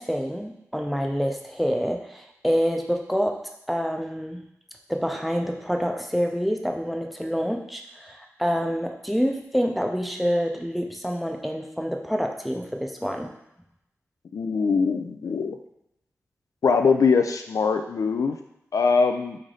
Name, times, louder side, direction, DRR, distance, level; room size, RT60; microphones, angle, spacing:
voice 1, 0.0-3.4 3.7-4.4 4.9-13.3, equal, ahead, 3 dB, 0.6 m, -27 dB
voice 2, 14.3-15.6 16.6-18.4 18.7-19.4, left 5 dB, 80° left, 6 dB, 0.4 m, -22 dB
4.0 x 3.3 x 3.8 m, 0.83 s
cardioid pair, 55°, 6 cm